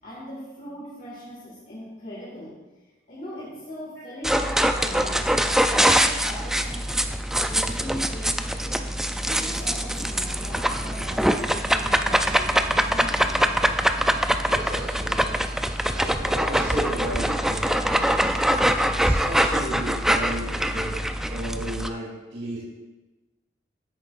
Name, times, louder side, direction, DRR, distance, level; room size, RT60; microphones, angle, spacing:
voice 1, 0.0-2.6 3.1-7.1 7.4-8.9 9.2-13.5, equal, 45° left, -6 dB, 2.2 m, -39 dB
sound 1, 4.2-21.9, equal, ahead, 0.3 m, -23 dB
voice 2, 14.4-15.4 15.9-18.4 18.9-20.9 21.3-22.6, right 1 dB, 85° right, -9 dB, 3.1 m, -34 dB
13.5 x 10.0 x 2.5 m, 1.2 s
head